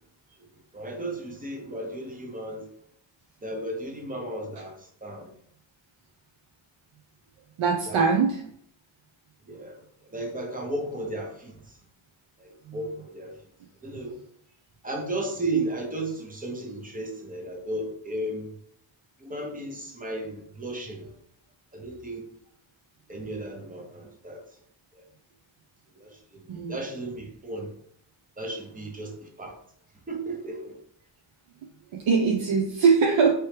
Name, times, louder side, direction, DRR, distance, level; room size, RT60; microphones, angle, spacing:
voice 1, 0.7-2.7 3.4-5.3 7.9-8.0 9.5-9.8 10.1-11.5 12.4-13.4 13.8-14.2 14.8-18.5 19.2-21.1 21.7-22.2 23.1-24.4 24.9-25.0 26.0-27.7 28.4-29.5 30.1-30.8, right 2 dB, 20° right, 0.7 m, -34 dB
voice 2, 7.6-8.4 12.7-12.8 26.5-26.8 31.9-33.3, right 5 dB, 85° right, 0.7 m, -22 dB
4.6 x 3.1 x 3.2 m
wide cardioid pair, 175°, 47 cm